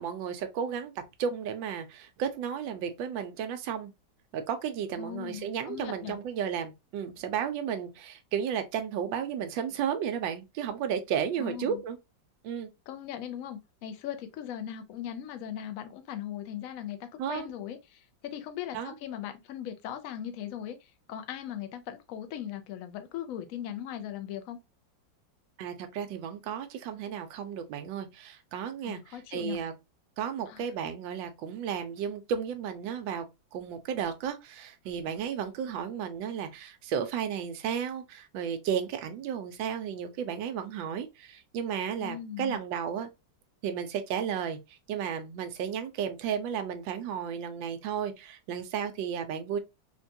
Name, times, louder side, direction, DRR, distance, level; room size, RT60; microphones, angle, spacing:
voice 1, 0.0-3.9 4.3-12.0 12.4-12.7 17.2-17.5 18.7-18.9 25.6-29.7 30.2-43.1 43.6-49.6, right 8 dB, 80° right, 1.3 m, -33 dB
voice 2, 5.0-6.2 11.4-11.8 12.9-24.6 28.8-29.7 30.5-30.6 42.0-42.6, left 10 dB, 80° left, 0.7 m, -39 dB
3.9 x 2.2 x 2.6 m
omnidirectional pair, 2.1 m